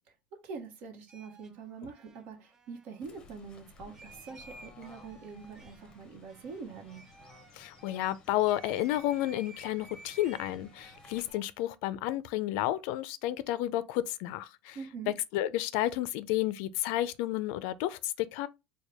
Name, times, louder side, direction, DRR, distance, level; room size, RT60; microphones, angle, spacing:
voice 1, 0.3-7.0 14.7-15.1, right 5 dB, 55° right, 1.0 m, -44 dB
sound 1, 1.1-8.1 8.5-11.4, right 3 dB, 15° right, 0.4 m, -55 dB
Fowl / Bird, 3.0-11.3, left 4 dB, 25° left, 0.7 m, -57 dB
voice 2, 7.5-14.8 15.3-18.5, left 14 dB, 70° left, 0.4 m, -31 dB
4.5 x 2.2 x 3.3 m
cardioid pair, 150°, 3 cm